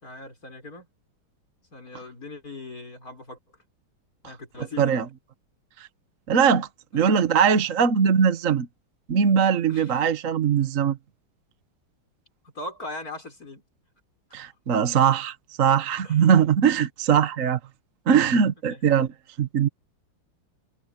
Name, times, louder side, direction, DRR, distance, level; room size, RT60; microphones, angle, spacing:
voice 1, 0.0-0.9 1.7-3.4 4.2-5.0 6.9-7.2 9.7-9.9 12.5-13.6 14.3-14.5 16.0-16.3 18.7-18.8, left 2 dB, 40° left, 6.6 m, -40 dB
voice 2, 6.3-6.7 6.9-8.7 9.1-11.0 14.3-17.6 18.1-19.1 19.4-19.7, right 7 dB, 45° right, 1.3 m, -21 dB
omnidirectional pair, 2.3 m